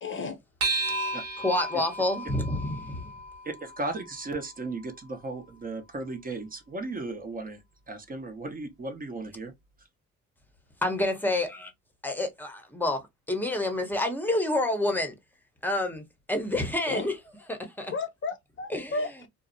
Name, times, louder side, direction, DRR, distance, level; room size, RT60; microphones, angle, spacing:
voice 1, 0.0-0.4 16.9-17.0 17.9-19.3, left 3 dB, 40° left, 0.5 m, -33 dB
sound 1, 0.6-5.4, right 2 dB, 65° right, 0.9 m, -34 dB
voice 2, 0.9-3.1 10.8-11.7 12.0-15.2 15.6-17.9 18.7-19.3, left 1 dB, 5° left, 0.7 m, -29 dB
voice 3, 3.4-7.6 7.9-9.5, right 2 dB, 30° right, 0.6 m, -36 dB
2.5 x 2.0 x 2.5 m
cardioid pair, 90°, 30 cm